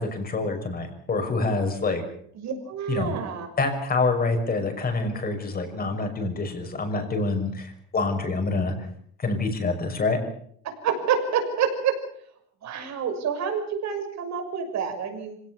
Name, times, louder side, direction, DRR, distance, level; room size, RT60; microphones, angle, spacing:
voice 1, 0.0-2.0 2.9-3.1 3.6-8.7 9.2-10.2, left 3 dB, 25° left, 5 dB, 6.0 m, -26 dB
voice 2, 2.3-3.5 10.6-12.0 12.6-15.4, right 7 dB, 50° right, 5 dB, 6.4 m, -28 dB
26.0 x 17.5 x 7.2 m, 0.64 s
cardioid pair, 140°, 35 cm